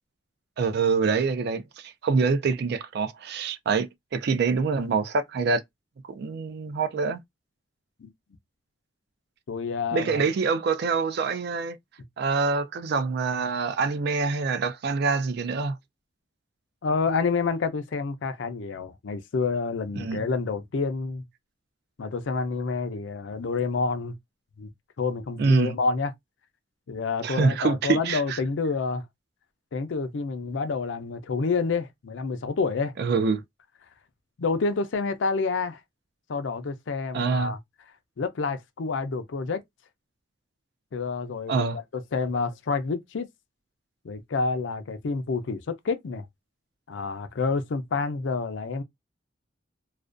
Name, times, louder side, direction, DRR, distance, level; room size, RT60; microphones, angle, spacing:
voice 1, 0.6-5.6 6.1-7.2 9.9-11.8 12.2-15.8 19.9-20.2 25.4-25.8 27.2-28.4 33.0-33.4 37.1-37.6 41.5-41.8, right 4 dB, 60° right, 0.4 m, -25 dB
voice 2, 9.5-10.3 16.8-21.2 22.0-24.2 24.6-24.7 25.0-26.1 26.9-29.0 29.7-32.9 34.4-35.8 36.3-37.6 38.2-39.6 40.9-43.3 44.0-46.2 46.9-48.8, left 4 dB, 75° left, 0.5 m, -28 dB
2.4 x 2.1 x 2.4 m
head